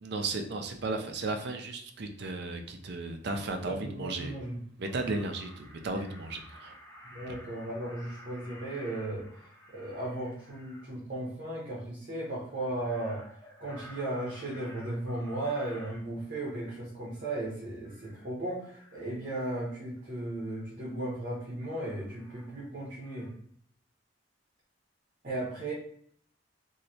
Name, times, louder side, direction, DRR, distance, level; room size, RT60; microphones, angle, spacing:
voice 1, 0.0-4.3 4.8-6.7 7.3-7.4, right 3 dB, 65° right, 5 dB, 0.5 m, -35 dB
voice 2, 3.7-4.6 7.0-9.5 9.7-13.2 13.6-23.3 25.2-25.7, right 1 dB, 45° right, -5 dB, 0.9 m, -36 dB
Crow, 3.9-4.5 4.8-10.9 12.5-16.8 17.1-17.5 17.9-18.3 18.6-19.6 20.4-20.7 21.7-22.8 23.0-23.3, equal, 15° left, 0.7 m, -53 dB
3.1 x 2.7 x 2.8 m, 0.63 s
head